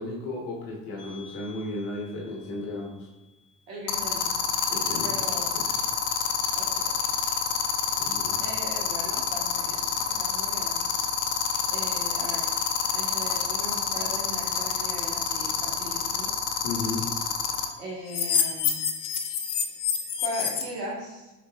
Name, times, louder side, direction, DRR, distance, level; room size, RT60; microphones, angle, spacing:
voice 1, 0.0-3.1 4.7-5.7 8.0-8.4 16.6-17.1, left 2 dB, 65° left, -2 dB, 1.1 m, -34 dB
sound 1, 1.0-1.3 3.9-17.6 18.1-20.6, left 8 dB, 40° left, 0.6 m, -26 dB
voice 2, 3.7-4.5 5.0-5.5 6.5-7.1 8.4-10.8 11.7-12.5 12.9-16.3 17.8-18.8 20.2-21.3, equal, 75° right, -4 dB, 1.4 m, -38 dB
4.7 x 4.1 x 2.3 m, 1.1 s
hypercardioid pair, 55°, 49 cm